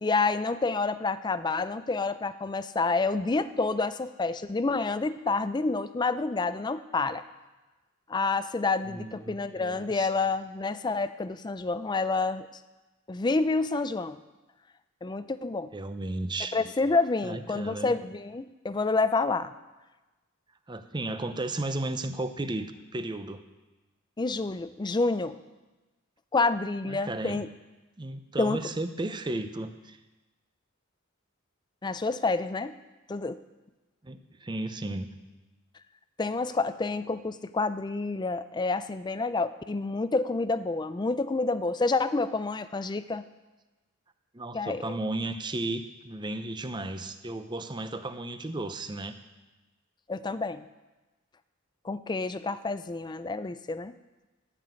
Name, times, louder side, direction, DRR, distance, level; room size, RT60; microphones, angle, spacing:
voice 1, 0.0-7.2 8.1-12.5 13.1-14.2 15.0-15.7 16.5-19.5 24.2-25.4 26.3-27.5 28.4-28.7 31.8-32.8 33.1-33.4 36.2-43.2 44.5-44.9 50.1-50.7 51.8-53.9, left 3 dB, 20° left, 13 dB, 0.4 m, -28 dB
voice 2, 8.9-10.1 15.7-16.6 17.2-17.9 20.7-23.4 26.9-27.5 28.0-30.0 34.0-35.1 44.3-49.2, right 2 dB, 20° right, 9 dB, 0.6 m, -34 dB
12.5 x 6.0 x 9.0 m, 1.1 s
head